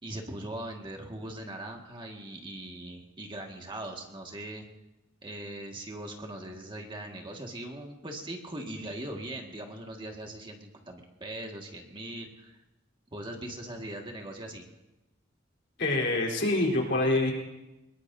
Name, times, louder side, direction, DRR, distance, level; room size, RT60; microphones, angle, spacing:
voice 1, 0.0-4.6 5.2-12.6 13.1-14.6, right 1 dB, 25° right, 1 dB, 1.8 m, -40 dB
voice 2, 15.8-17.3, left 2 dB, 65° left, -1 dB, 3.8 m, -26 dB
23.5 x 21.5 x 2.7 m, 1.0 s
head